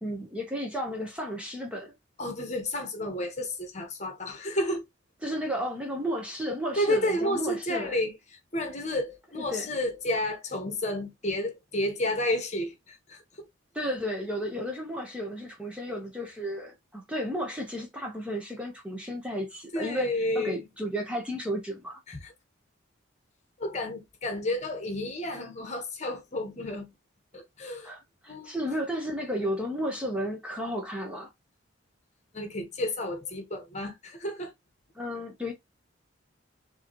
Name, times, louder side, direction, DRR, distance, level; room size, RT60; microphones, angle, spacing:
voice 1, 0.0-1.9 5.2-8.0 9.5-9.7 13.7-22.0 27.8-31.3 34.9-35.5, equal, 5° right, 0.9 m, -33 dB
voice 2, 2.2-4.8 6.8-8.1 8.5-13.2 19.7-20.6 22.1-22.3 23.6-26.9 27.3-27.9 28.3-28.5 32.3-34.5, left 1 dB, 35° left, 1.2 m, -31 dB
4.8 x 2.9 x 2.9 m
head